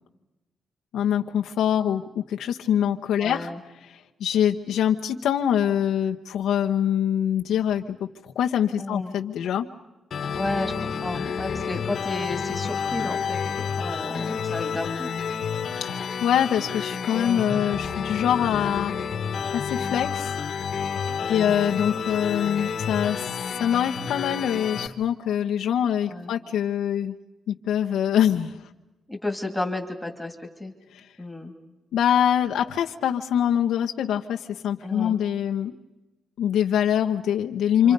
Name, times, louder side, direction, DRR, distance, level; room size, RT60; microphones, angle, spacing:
voice 1, 0.9-3.5 3.9-9.7 15.8-18.9 19.5-20.4 21.3-23.3 23.6-27.2 27.5-28.7 30.9-31.1 31.9-35.8 36.4-37.9, left 9 dB, 90° left, 3 dB, 0.9 m, -24 dB
voice 2, 3.2-3.6 8.8-9.1 10.3-10.7 11.0-15.1 17.1-17.5 21.2-21.5 26.1-26.3 29.1-30.7 31.2-31.5 34.8-35.1 37.8-37.9, left 2 dB, 5° left, 4 dB, 2.5 m, -32 dB
sound 1, 10.1-24.9, left 6 dB, 55° left, 1.3 m, -30 dB
29.5 x 25.5 x 5.4 m, 1.1 s
cardioid pair, 140°, 0 cm